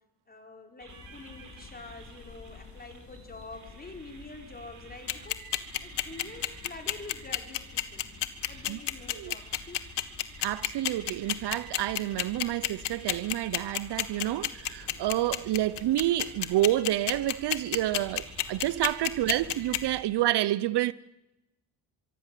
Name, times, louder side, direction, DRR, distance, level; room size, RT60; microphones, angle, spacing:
voice 1, 0.3-8.1 8.5-9.9, left 3 dB, 20° left, 4.5 m, -46 dB
sound 1, 0.8-20.0, right 6 dB, 45° right, 5.1 m, -52 dB
sound 2, 0.9-20.0, left 5 dB, 40° left, 2.8 m, -51 dB
sound 3, 5.1-19.8, left 14 dB, 75° left, 1.7 m, -28 dB
voice 2, 10.4-20.9, right 14 dB, 70° right, 0.8 m, -29 dB
24.5 x 24.0 x 7.6 m
cardioid pair, 130°, 42 cm